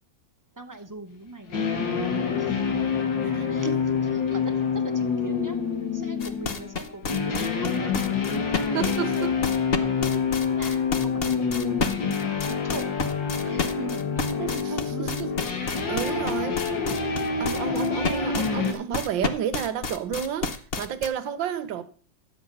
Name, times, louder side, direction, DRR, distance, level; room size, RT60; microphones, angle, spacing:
voice 1, 0.6-2.0 2.4-2.5 3.5-3.7 4.3-4.5 5.0-5.6 5.9-7.9 8.8-9.2 9.8-12.9 13.5-15.2, right 2 dB, 25° right, 0.4 m, -40 dB
sound 1, 1.5-18.7, left 5 dB, 70° left, 2.4 m, -27 dB
voice 2, 3.2-3.9 8.5-9.4 13.3-13.6 14.0-16.7 17.4-21.8, right 8 dB, 80° right, 1.7 m, -32 dB
sound 2, 6.2-21.1, left 4 dB, 45° left, 0.8 m, -30 dB
11.5 x 7.8 x 5.5 m
omnidirectional pair, 2.1 m